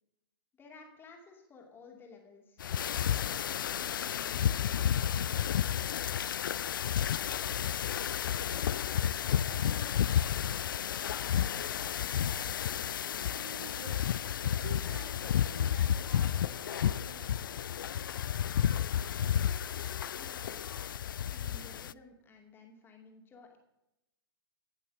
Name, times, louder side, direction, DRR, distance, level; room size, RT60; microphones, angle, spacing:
voice 1, 0.6-4.8 19.4-20.6 21.2-23.6, left 3 dB, 15° left, 2 dB, 2.5 m, -55 dB
sound 1, 2.6-21.9, left 9 dB, 60° left, 0.4 m, -31 dB
voice 2, 8.3-12.1 12.4-14.1 14.4-17.5, right 4 dB, 75° right, 3 dB, 2.8 m, -52 dB
16.0 x 6.8 x 6.3 m, 0.90 s
figure-of-eight pair, 115°, 12 cm